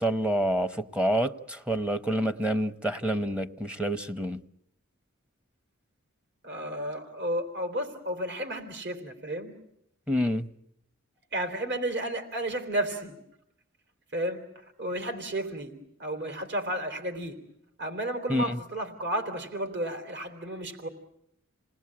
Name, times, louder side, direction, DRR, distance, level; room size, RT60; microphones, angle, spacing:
voice 1, 0.0-4.4 10.1-10.5 18.3-18.6, equal, 5° right, 0.9 m, -28 dB
voice 2, 6.4-9.5 11.3-13.2 14.1-15.7 16.0-17.4 17.8-20.9, right 1 dB, 60° right, 3.4 m, -32 dB
28.5 x 19.5 x 8.7 m
head